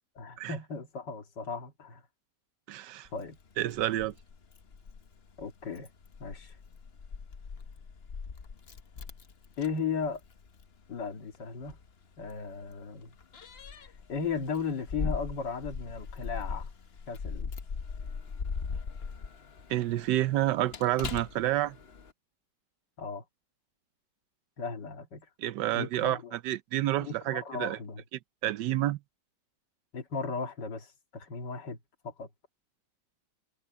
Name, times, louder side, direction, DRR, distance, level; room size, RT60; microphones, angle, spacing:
voice 1, 0.2-2.0 3.1-3.4 5.4-5.9 6.2-6.6 9.6-10.2 10.9-11.8 12.2-13.1 13.7-16.7 17.1-17.5 23.0-23.2 24.6-25.3 25.7-26.4 27.0-28.0 29.9-32.3, left 5 dB, 80° left, 2.6 m, -36 dB
voice 2, 2.7-3.1 3.6-4.1 19.7-21.8 25.4-27.8 28.4-29.0, right 14 dB, 85° right, 1.3 m, -29 dB
Keys jangling, 3.0-22.1, left 5 dB, 45° left, 1.1 m, -41 dB
omnidirectional pair, 1.8 m